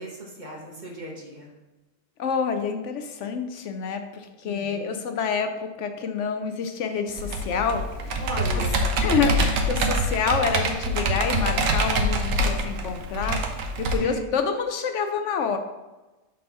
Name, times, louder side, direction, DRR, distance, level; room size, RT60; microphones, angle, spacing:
voice 1, 0.0-1.5 4.4-5.0 8.2-8.9 11.0-11.3 14.0-14.2, right 1 dB, 40° right, -2 dB, 1.2 m, -37 dB
voice 2, 2.2-8.2 9.0-13.4 13.8-15.6, left 6 dB, 70° left, 7 dB, 0.8 m, -27 dB
Computer keyboard, 7.2-13.9, right 1 dB, 85° right, 1.1 m, -25 dB
5.4 x 4.1 x 5.4 m, 1.1 s
omnidirectional pair, 1.3 m